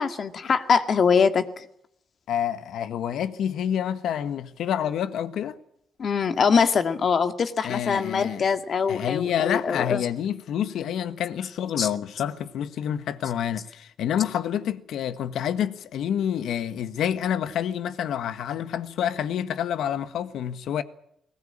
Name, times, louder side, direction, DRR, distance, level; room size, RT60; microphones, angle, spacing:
voice 1, 0.0-1.5 6.0-10.1 11.8-11.9, left 6 dB, 50° left, 2.1 m, -23 dB
voice 2, 2.3-5.6 7.6-8.5 8.9-20.8, left 9 dB, 75° left, 1.5 m, -28 dB
21.0 x 19.5 x 8.8 m
cardioid pair, 90°, 0 cm